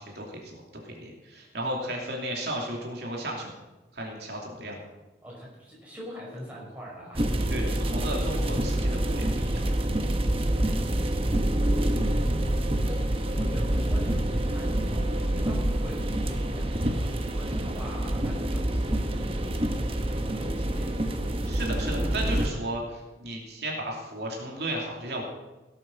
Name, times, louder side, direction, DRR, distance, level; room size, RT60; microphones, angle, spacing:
voice 1, 0.0-3.5 3.9-4.8 7.5-9.6 21.5-22.8 23.2-25.2, right 1 dB, 70° right, -1 dB, 2.9 m, -34 dB
voice 2, 5.2-7.6 12.7-21.3 22.4-22.6, equal, 10° right, -5 dB, 5.1 m, -43 dB
sound 1, 7.1-22.5, right 1 dB, 30° right, 1.0 m, -27 dB
17.5 x 8.5 x 6.3 m, 1.1 s
head